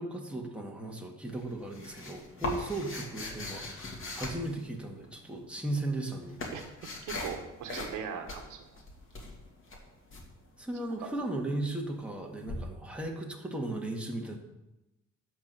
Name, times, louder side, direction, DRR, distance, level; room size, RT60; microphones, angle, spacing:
voice 1, 0.0-6.4 10.6-14.4, right 2 dB, 5° right, 0 dB, 1.8 m, -36 dB
sound 1, 1.3-5.1 5.8-7.4 7.7-8.0 8.3-10.2 12.5-12.6, left 2 dB, 45° left, 2.6 m, -39 dB
voice 2, 7.0-8.8 11.0-11.1, right 7 dB, 90° right, 5 dB, 1.3 m, -40 dB
11.5 x 4.6 x 6.8 m, 0.97 s
cardioid pair, 90°, 30 cm